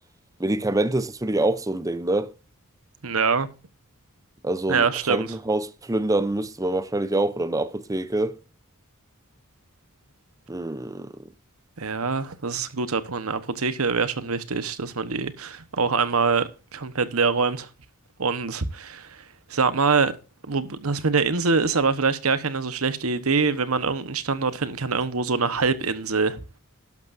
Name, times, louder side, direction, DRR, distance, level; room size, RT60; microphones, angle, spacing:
voice 1, 0.4-2.3 4.4-8.4 10.5-11.1, right 2 dB, 15° right, 0.6 m, -25 dB
voice 2, 3.0-3.5 4.7-5.3 11.8-17.7 18.2-19.2 19.5-20.1 20.5-26.4, right 4 dB, 75° right, 1.2 m, -24 dB
12.0 x 12.0 x 2.7 m
head